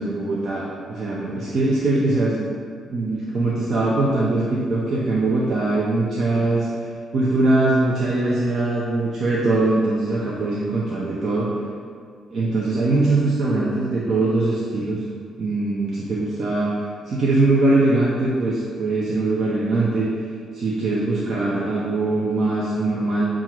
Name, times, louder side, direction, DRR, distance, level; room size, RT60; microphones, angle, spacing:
voice 1, 0.0-2.5 2.9-6.7 7.1-11.5 12.3-15.0 15.4-16.7 17.1-20.1 20.5-23.3, right 2 dB, 55° right, -6 dB, 0.6 m, -21 dB
7.3 x 2.4 x 3.0 m, 2.1 s
cardioid pair, 90°, 0 cm